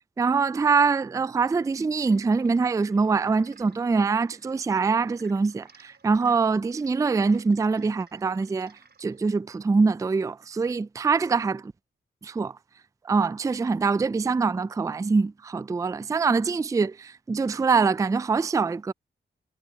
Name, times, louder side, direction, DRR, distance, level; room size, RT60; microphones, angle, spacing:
voice 1, 0.2-11.7 12.2-12.6 13.0-18.9, right 4 dB, 15° right, 0.3 m, -24 dB
sound 1, 1.4-9.3, right 4 dB, 55° right, 4.7 m, -58 dB
cardioid pair, 45°, 20 cm